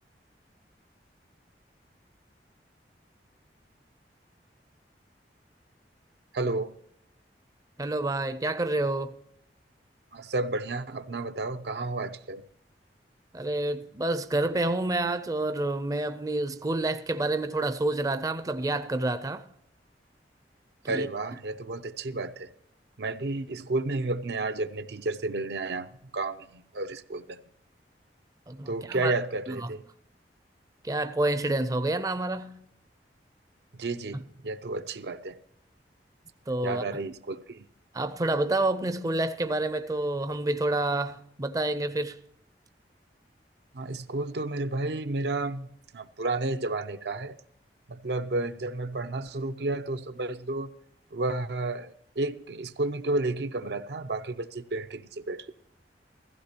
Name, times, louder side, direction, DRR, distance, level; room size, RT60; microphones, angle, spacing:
voice 1, 6.3-6.7 10.1-12.4 20.9-22.5 23.0-27.4 28.7-29.8 33.7-35.4 36.6-37.7 43.7-45.7 45.9-47.4 47.9-50.7 51.1-55.5, right 2 dB, 70° right, 0.6 m, -31 dB
voice 2, 7.8-9.1 13.3-19.5 20.8-21.1 28.5-29.1 29.5-29.7 30.8-32.6 34.1-34.2 36.5-36.8 37.9-42.2, right 2 dB, 20° right, 0.5 m, -28 dB
15.5 x 15.0 x 2.9 m
head